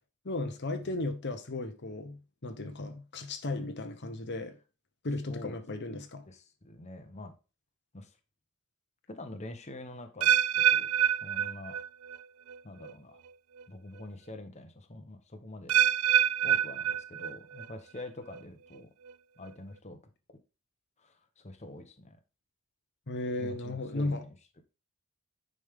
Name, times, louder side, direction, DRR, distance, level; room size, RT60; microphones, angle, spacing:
voice 1, 0.2-4.6 5.0-6.2 23.1-24.2, left 2 dB, 50° left, 1.0 m, -35 dB
voice 2, 6.3-7.3 7.9-8.2 9.1-11.8 12.6-13.2 13.7-15.8 16.4-18.9 19.4-20.0 20.3-20.4 21.0-22.2 23.4-24.6, left 1 dB, 30° left, 1.1 m, -46 dB
sound 1, 10.2-12.2 12.5-12.9 13.6-13.7 15.7-17.6 18.0-18.4 19.1-19.2, right 10 dB, 75° right, 0.4 m, -27 dB
10.0 x 5.3 x 3.7 m
head